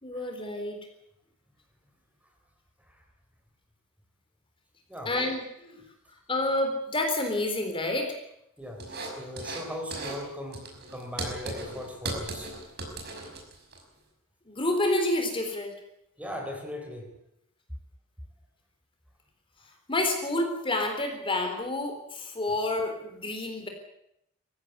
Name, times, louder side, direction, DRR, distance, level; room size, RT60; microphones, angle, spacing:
voice 1, 0.0-0.8 5.1-5.4 6.3-8.2 14.5-15.7 19.9-23.7, left 1 dB, 25° left, 4 dB, 3.9 m, -28 dB
voice 2, 8.6-12.5 16.2-17.1, left 1 dB, 5° right, 3 dB, 3.6 m, -39 dB
sound 1, 8.8-9.6 9.9-10.2 10.5-13.8, right 2 dB, 50° right, 5.7 m, -37 dB
21.5 x 15.5 x 9.7 m, 0.79 s
head